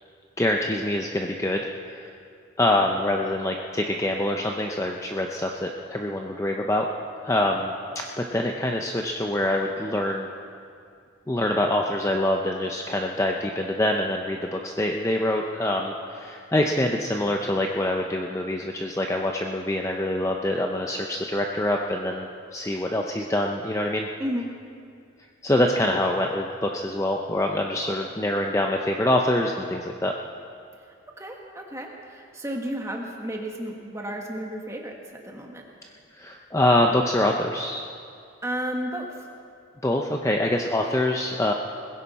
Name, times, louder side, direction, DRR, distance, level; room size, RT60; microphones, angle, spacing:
voice 1, 0.4-1.6 1.9-2.1 2.6-6.9 7.2-7.7 8.2-10.3 11.3-24.1 25.4-30.1 36.2-37.8 39.8-41.5, left 1 dB, 15° left, 2 dB, 0.6 m, -25 dB
voice 2, 31.2-35.6 38.4-39.2, equal, 15° right, 1 dB, 1.4 m, -32 dB
20.5 x 16.0 x 4.2 m, 2.4 s
head